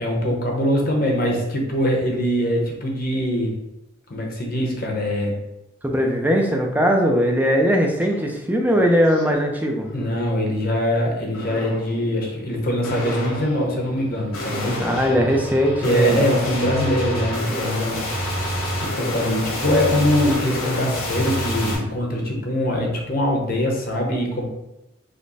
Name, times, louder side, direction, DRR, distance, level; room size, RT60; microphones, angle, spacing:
voice 1, 0.0-3.6 4.1-5.4 9.9-14.8 15.8-18.0 18.7-24.4, equal, 45° left, 0 dB, 0.9 m, -22 dB
voice 2, 5.8-9.9 14.8-16.2, equal, 10° right, 1 dB, 0.5 m, -19 dB
sound 1, 8.0-8.2 8.6-9.3 9.8-10.3 11.3-11.9 12.8-21.7, equal, 85° left, 1.3 m, -28 dB
5.1 x 2.2 x 4.0 m, 0.91 s
head